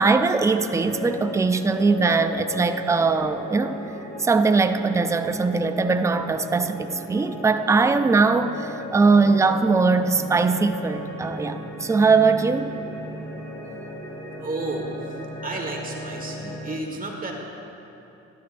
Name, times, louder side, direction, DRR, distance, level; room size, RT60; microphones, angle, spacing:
voice 1, 0.0-3.8 4.2-12.7, right 4 dB, 10° right, 9 dB, 0.4 m, -21 dB
sound 1, 0.7-16.8, left 1 dB, 10° left, 1.8 m, -36 dB
voice 2, 14.4-17.3, right 2 dB, 30° right, 0 dB, 1.6 m, -32 dB
12.0 x 11.5 x 2.6 m, 2.9 s
cardioid pair, 90°, 30 cm